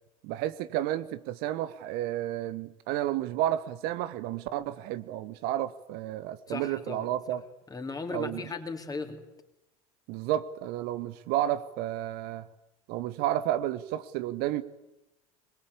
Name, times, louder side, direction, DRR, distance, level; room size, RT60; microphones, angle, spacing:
voice 1, 0.2-7.4 8.1-8.4 10.1-12.5 12.9-14.6, right 13 dB, 55° right, 1.1 m, -31 dB
voice 2, 6.5-7.4 7.7-9.2, left 4 dB, 20° left, 3.5 m, -37 dB
22.5 x 22.0 x 8.5 m
hypercardioid pair, 75°, 19 cm